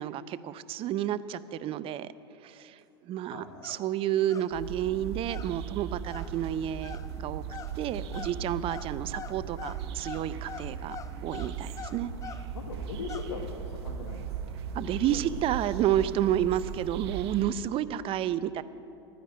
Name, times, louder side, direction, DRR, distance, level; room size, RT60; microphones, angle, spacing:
voice 1, 0.0-2.1 2.4-7.4 7.8-11.0 11.2-12.1 14.7-18.6, right 11 dB, 40° right, 16 dB, 0.6 m, -30 dB
voice 2, 3.1-3.7 12.5-15.3 15.6-15.8, left 5 dB, 90° left, 0 dB, 1.4 m, -41 dB
sound 1, 3.5-3.9 4.2-4.6 4.8-12.5 12.9-13.3, left 7 dB, 25° left, 0.6 m, -46 dB
sound 2, 4.5-17.5, right 7 dB, 75° right, 0.8 m, -38 dB
12.0 x 10.0 x 9.6 m, 2.8 s
hypercardioid pair, 100°, 14 cm